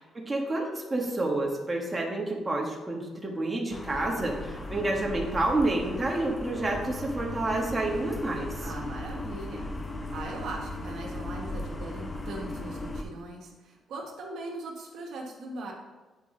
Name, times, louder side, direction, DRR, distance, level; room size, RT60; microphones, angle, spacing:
voice 1, 0.0-8.7, right 2 dB, 20° right, -1 dB, 1.4 m, -29 dB
sound 1, 3.7-13.0, left 2 dB, 25° left, 0.9 m, -37 dB
voice 2, 8.6-9.7 10.1-15.7, right 2 dB, 70° right, 0 dB, 1.3 m, -40 dB
8.4 x 4.8 x 3.8 m, 1.3 s
cardioid pair, 90°, 0 cm